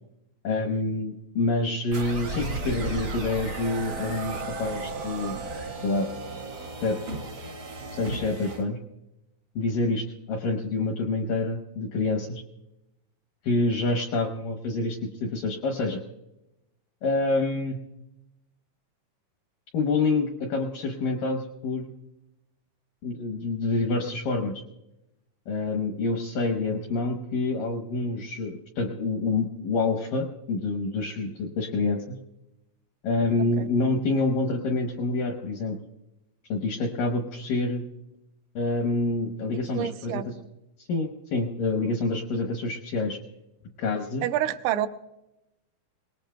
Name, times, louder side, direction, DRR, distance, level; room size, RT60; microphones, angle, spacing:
voice 1, 0.4-5.3 5.8-6.1 6.8-7.0 8.0-8.8 9.6-12.4 13.4-16.0 17.0-17.8 19.7-21.9 23.0-24.6 25.5-32.2 33.0-35.8 36.5-37.8 38.6-40.3 40.8-43.2 43.8-44.3, left 3 dB, 80° left, 2 dB, 2.0 m, -27 dB
sound 1, 1.9-8.6, right 3 dB, 65° right, 1.1 m, -34 dB
voice 2, 39.8-40.3 44.2-44.9, right 11 dB, 85° right, 8 dB, 2.8 m, -28 dB
23.0 x 19.0 x 2.3 m, 0.91 s
omnidirectional pair, 5.2 m